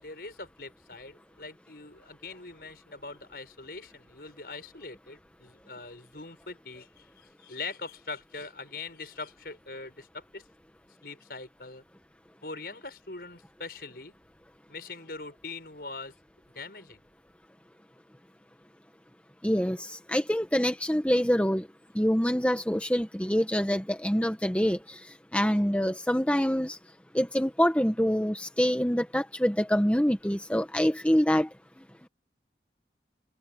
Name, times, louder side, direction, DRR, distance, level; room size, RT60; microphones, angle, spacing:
voice 1, 0.0-10.4 11.0-11.8 12.4-14.1 14.7-16.1 16.5-17.0, left 3 dB, 60° left, 6.2 m, -42 dB
voice 2, 19.4-21.7 21.9-25.0 25.3-26.8 27.1-31.5, equal, 5° left, 1.1 m, -25 dB
head